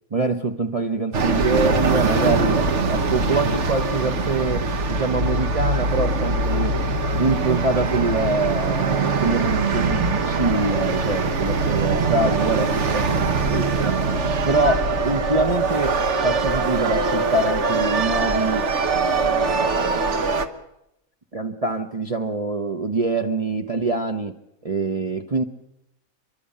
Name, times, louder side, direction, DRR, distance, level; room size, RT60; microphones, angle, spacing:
voice 1, 0.1-2.6 2.9-6.8 7.2-14.0 14.4-20.3 21.3-24.3 24.6-25.4, right 3 dB, 30° right, 3 dB, 1.0 m, -25 dB
sound 1, 1.1-20.5, right 3 dB, 55° right, 1.5 m, -22 dB
29.0 x 11.5 x 8.7 m, 0.84 s
omnidirectional pair, 1.5 m